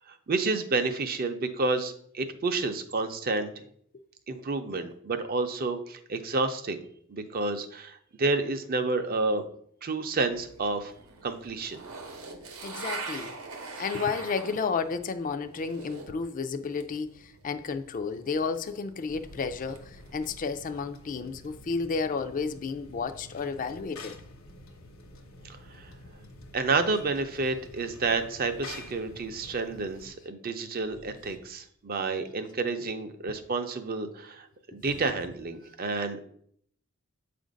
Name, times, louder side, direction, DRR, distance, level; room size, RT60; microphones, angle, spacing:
voice 1, 0.3-3.5 4.3-6.8 7.1-9.4 9.8-10.9 11.2-11.8 25.8-25.9 26.5-34.5 34.7-36.2, right 3 dB, 45° right, 0.5 m, -30 dB
sound 1, 10.3-16.2 16.5-20.3, right 3 dB, 85° right, 0.8 m, -43 dB
voice 2, 12.6-13.3 13.8-24.2, left 5 dB, 40° left, 0.4 m, -32 dB
sound 2, 19.1-30.1, left 2 dB, 75° left, 0.9 m, -48 dB
7.3 x 2.5 x 5.1 m
head